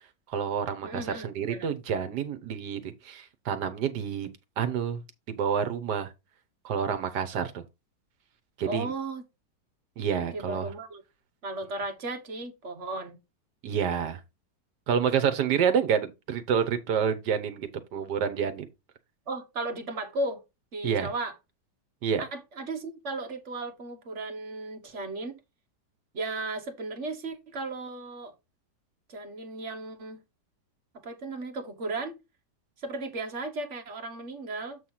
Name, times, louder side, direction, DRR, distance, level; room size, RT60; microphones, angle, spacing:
voice 1, 0.3-5.0 5.3-6.1 6.6-7.6 8.6-8.9 10.0-10.7 13.6-14.2 14.9-18.7 20.8-21.1 22.0-22.2, right 7 dB, 70° right, 1.5 m, -28 dB
voice 2, 0.8-1.8 8.6-9.2 10.3-11.0 11.4-13.2 19.3-20.4 20.7-21.3 22.2-25.4 26.1-28.3 29.1-30.2 31.0-32.2 32.8-34.8, right 2 dB, 45° right, 1.4 m, -35 dB
7.7 x 3.2 x 5.6 m
omnidirectional pair, 1.9 m